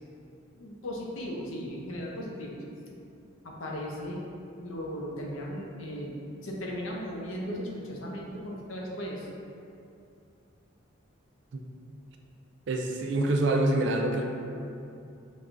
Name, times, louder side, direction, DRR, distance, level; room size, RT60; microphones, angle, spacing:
voice 1, 0.6-2.6 3.4-4.2 4.6-9.3, equal, 70° left, -2 dB, 0.6 m, -37 dB
voice 2, 12.7-14.3, right 1 dB, 55° right, 2 dB, 0.4 m, -26 dB
6.0 x 2.3 x 2.5 m, 2.6 s
head